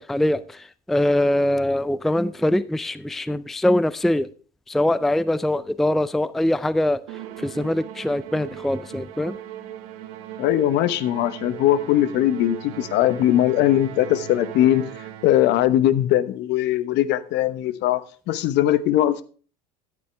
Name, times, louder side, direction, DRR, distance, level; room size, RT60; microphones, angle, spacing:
voice 1, 0.0-4.3 4.7-7.0 7.4-9.4, left 1 dB, ahead, 16 dB, 0.4 m, -23 dB
Musical instrument, 7.1-15.6, right 11 dB, 70° right, 1.7 m, -38 dB
voice 2, 10.4-14.8 15.2-19.2, left 12 dB, 55° left, 14 dB, 1.1 m, -20 dB
13.5 x 9.8 x 3.4 m, 0.40 s
hypercardioid pair, 85°, 21 cm